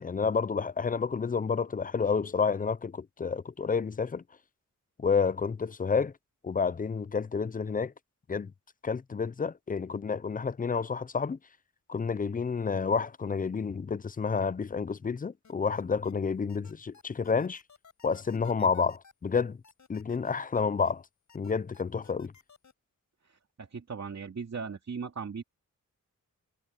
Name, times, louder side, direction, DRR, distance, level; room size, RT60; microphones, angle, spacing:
voice 1, 0.0-4.2 5.0-6.1 6.4-7.9 8.3-8.5 8.8-11.4 11.9-17.6 18.0-19.6 19.9-21.0 21.3-22.3, left 5 dB, 25° left, 0.4 m, -29 dB
sound 1, 15.4-16.1 16.5-20.9 21.3-22.7, left 5 dB, 65° left, 5.5 m, -57 dB
voice 2, 23.2-25.4, right 5 dB, 55° right, 2.6 m, -38 dB
wide cardioid pair, 135°, 32 cm